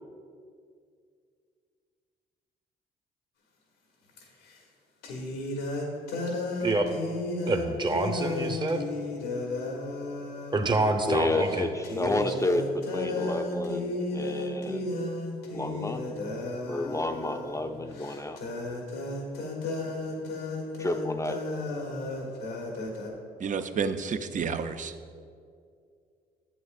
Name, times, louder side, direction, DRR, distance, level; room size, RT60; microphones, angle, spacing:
sound 1, 4.2-4.3 5.0-11.0 11.4-11.6 11.8-23.1, left 2 dB, 85° left, 1.3 m, -34 dB
voice 1, 6.6-6.9 7.5-8.8 10.5-11.7 12.0-12.3, right 2 dB, 25° right, 6 dB, 0.9 m, -27 dB
voice 2, 11.1-15.0 15.5-16.0 16.7-18.4 20.8-21.4, left 2 dB, 15° left, 6 dB, 0.6 m, -30 dB
voice 3, 23.4-24.9, right 5 dB, 45° right, 10 dB, 0.6 m, -30 dB
11.0 x 7.9 x 2.4 m, 2.2 s
supercardioid pair, 60°, 19 cm